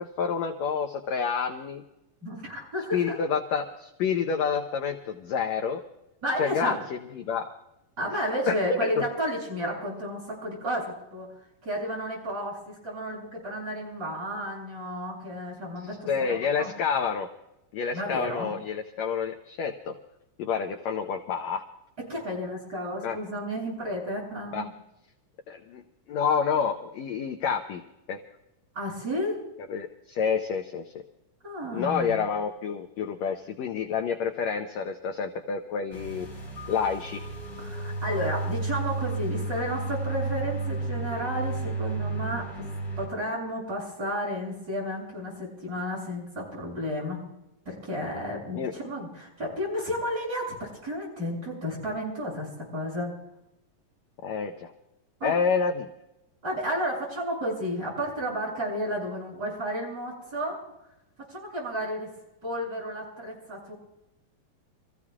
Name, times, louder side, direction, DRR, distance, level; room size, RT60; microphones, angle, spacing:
voice 1, 0.0-1.8 2.9-5.8 6.4-6.8 7.1-7.5 8.5-9.0 16.1-17.3 17.7-19.9 20.4-21.6 23.0-23.2 24.5-24.7 25.5-25.8 26.1-27.8 28.1-28.2 29.7-30.8 31.7-36.3 36.7-37.2 48.6-48.7 54.2-54.7 55.2-55.9, left 6 dB, 70° left, 4 dB, 1.7 m, -28 dB
voice 2, 2.2-3.2 6.2-6.8 8.0-11.3 11.6-16.7 17.9-18.5 22.1-24.7 28.7-29.4 31.4-32.1 37.6-42.6 43.0-47.2 47.7-53.1 55.2-55.3 56.4-60.6 61.3-62.1 62.4-63.7, equal, 25° right, -5 dB, 7.7 m, -32 dB
sound 1, 35.9-43.1, right 3 dB, 25° left, 3.6 m, -32 dB
27.5 x 15.0 x 2.4 m, 0.91 s
omnidirectional pair, 3.9 m